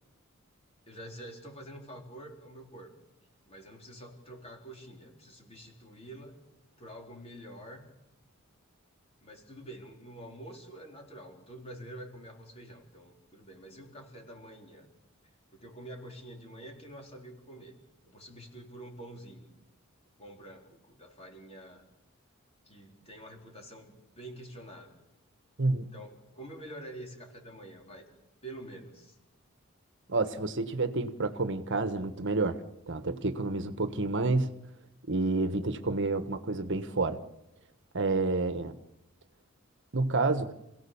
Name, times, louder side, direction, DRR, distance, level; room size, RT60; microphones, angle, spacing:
voice 1, 0.9-2.9 3.5-6.4 6.8-7.9 9.2-14.9 15.5-17.7 18.1-19.5 20.2-21.9 22.7-24.9 25.9-28.0 28.4-29.2, right 1 dB, 30° left, 1 dB, 4.3 m, -47 dB
voice 2, 30.1-32.6 32.9-34.5 35.1-37.2 37.9-38.8 39.9-40.5, right 3 dB, 60° right, 10 dB, 1.2 m, -29 dB
28.0 x 17.0 x 7.0 m, 0.92 s
head